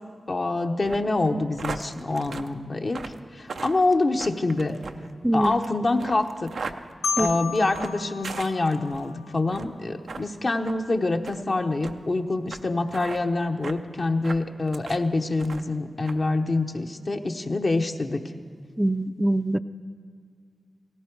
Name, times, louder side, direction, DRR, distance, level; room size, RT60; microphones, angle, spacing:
voice 1, 0.3-3.0 3.3-4.8 5.3-6.5 7.2-18.2, left 2 dB, 55° left, 4 dB, 0.9 m, -26 dB
sound 1, 0.8-9.1 9.5-9.8 10.1-10.3 10.6-10.8 11.2-11.4 11.8-11.9 12.5-12.6 12.9-13.2 13.6-13.8 14.2-15.0 15.4-15.8 16.1-16.2, right 4 dB, 80° right, 0.6 m, -38 dB
voice 2, 5.2-5.6 7.2-7.3 18.8-19.6, right 1 dB, 10° right, 13 dB, 0.5 m, -23 dB
Marimba xylophone, 7.0-9.9, left 7 dB, 85° left, 0.8 m, -33 dB
17.0 x 15.5 x 4.6 m, 2.2 s
cardioid pair, 40°, 0 cm